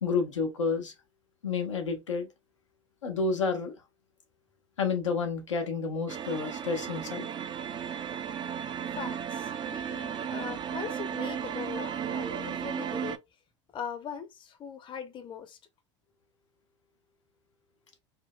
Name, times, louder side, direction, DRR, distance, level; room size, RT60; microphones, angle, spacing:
voice 1, 0.0-0.9 1.4-2.3 3.0-3.7 4.8-7.3, left 4 dB, 90° left, 1.0 m, -30 dB
sound 1, 6.1-13.2, right 8 dB, 30° right, 0.5 m, -35 dB
voice 2, 8.9-13.2 13.7-15.6, left 7 dB, 30° left, 0.8 m, -40 dB
4.3 x 2.1 x 2.3 m
hypercardioid pair, 85°, 15 cm